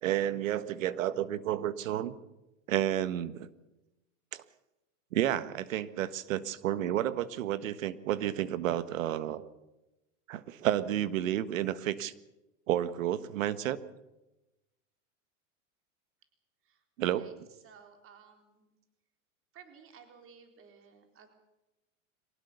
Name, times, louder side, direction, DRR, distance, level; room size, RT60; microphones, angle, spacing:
voice 1, 0.0-2.1 2.7-3.5 4.3-4.4 5.1-9.5 10.3-12.1 12.7-13.8 17.0-17.3, right 12 dB, 75° right, 14 dB, 1.5 m, -31 dB
voice 2, 17.2-18.7 19.5-21.3, right 6 dB, 30° right, 4 dB, 4.0 m, -56 dB
23.5 x 19.0 x 6.9 m, 0.98 s
hypercardioid pair, 120°, 40 cm